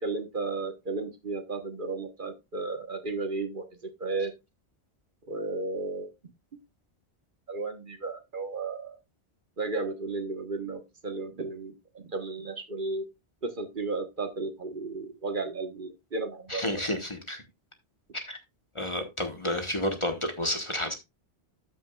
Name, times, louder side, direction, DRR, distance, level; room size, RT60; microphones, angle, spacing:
voice 1, 0.0-4.3 5.3-6.1 7.5-9.0 9.6-13.1 13.4-16.9, right 3 dB, 50° right, 1.3 m, -34 dB
voice 2, 16.5-17.4 18.1-18.4 18.7-20.9, left 1 dB, 30° left, 1.2 m, -31 dB
13.0 x 6.0 x 2.3 m
omnidirectional pair, 1.1 m